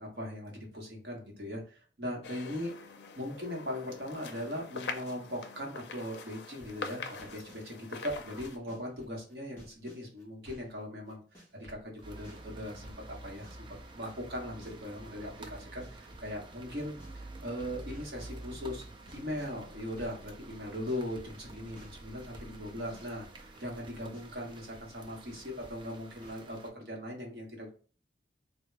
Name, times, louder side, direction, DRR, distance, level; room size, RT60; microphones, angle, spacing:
voice 1, 0.0-2.7 3.1-12.9 13.2-16.9 17.4-18.8 19.1-27.7, left 1 dB, 60° right, -1 dB, 1.0 m, -39 dB
sound 1, 2.2-8.6, left 4 dB, 70° left, 0.4 m, -44 dB
sound 2, 6.6-7.7 8.1-10.8 11.1-17.2 17.6-26.4, equal, 10° left, 1.4 m, -55 dB
sound 3, 12.0-26.7, right 2 dB, 25° right, 0.3 m, -49 dB
3.4 x 2.1 x 3.1 m, 0.40 s
head